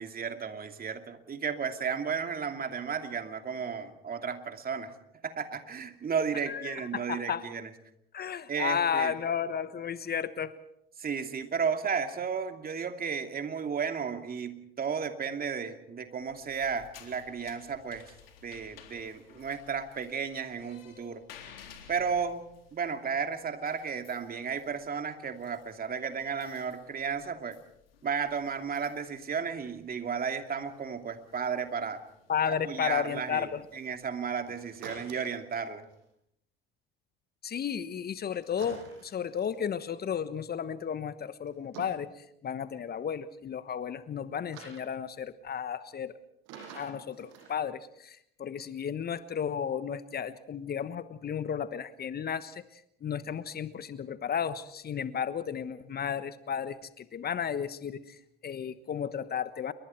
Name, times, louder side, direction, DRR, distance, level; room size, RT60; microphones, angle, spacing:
voice 1, 0.0-4.9 5.2-7.7 8.5-9.1 11.0-18.0 18.4-21.2 21.9-22.4 22.7-27.6 28.0-32.0 32.4-35.8, right 6 dB, 30° right, 6 dB, 2.7 m, -33 dB
voice 2, 6.5-7.4 8.1-10.5 32.3-33.6 37.4-42.1 42.4-46.1 46.7-52.6 53.0-58.0 58.4-59.7, left 7 dB, 30° left, 14 dB, 1.2 m, -33 dB
sound 1, 16.2-34.3, left 7 dB, 80° left, 3.8 m, -57 dB
sound 2, 34.4-36.0 38.4-39.5 41.5-42.0 44.5-44.8 46.5-47.5, right 5 dB, 60° right, 7.8 m, -47 dB
28.5 x 23.5 x 4.5 m, 0.74 s
hypercardioid pair, 70°, 29 cm